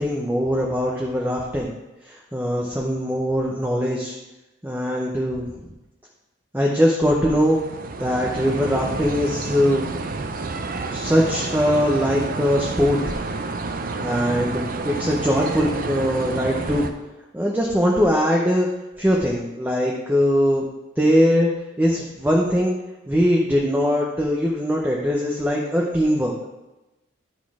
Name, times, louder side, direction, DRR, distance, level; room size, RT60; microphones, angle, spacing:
voice 1, 0.0-1.7 2.0-4.1 4.6-5.5 6.5-7.6 8.0-9.9 10.9-13.0 14.0-16.9 17.3-18.7 19.0-20.7 21.0-21.5 21.8-22.7 23.1-26.3, equal, 10° right, -2 dB, 0.7 m, -21 dB
sound 1, 7.3-16.9, right 3 dB, 45° right, 0.5 m, -29 dB
10.5 x 4.1 x 4.8 m, 1.0 s
head